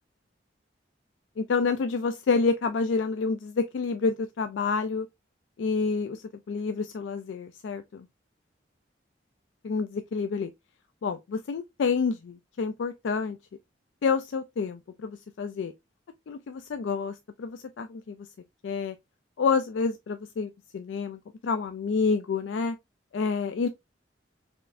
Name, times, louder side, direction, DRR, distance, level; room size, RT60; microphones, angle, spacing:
voice 1, 1.4-5.1 5.6-8.1 9.6-10.5 11.0-13.4 14.0-15.7 16.3-18.3 18.6-19.0 19.4-22.8 23.1-23.7, left 4 dB, 70° left, 0.4 m, -28 dB
4.3 x 3.2 x 2.5 m
head